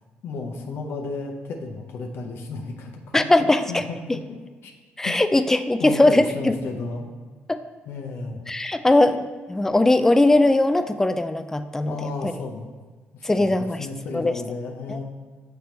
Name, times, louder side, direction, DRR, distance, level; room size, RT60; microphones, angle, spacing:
voice 1, 0.2-4.2 4.6-4.7 5.0-5.1 5.8-7.1 7.9-8.4 11.8-12.7 13.1-15.0, left 3 dB, 75° left, 2 dB, 0.7 m, -33 dB
voice 2, 3.1-3.8 5.0-6.6 7.5-7.6 8.5-12.3 13.2-13.9 14.1-14.3 14.9-15.0, left 2 dB, 10° left, 10 dB, 0.3 m, -20 dB
6.6 x 4.6 x 3.1 m, 1.4 s
cardioid pair, 95°, 4 cm